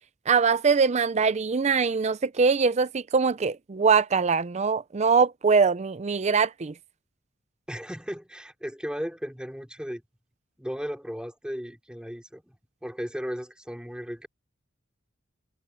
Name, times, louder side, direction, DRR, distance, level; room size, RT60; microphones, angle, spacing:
voice 1, 0.3-6.7, right 5 dB, 35° right, 0.5 m, -22 dB
voice 2, 7.7-10.0 10.6-12.6 12.8-14.3, equal, 5° right, 3.3 m, -35 dB
head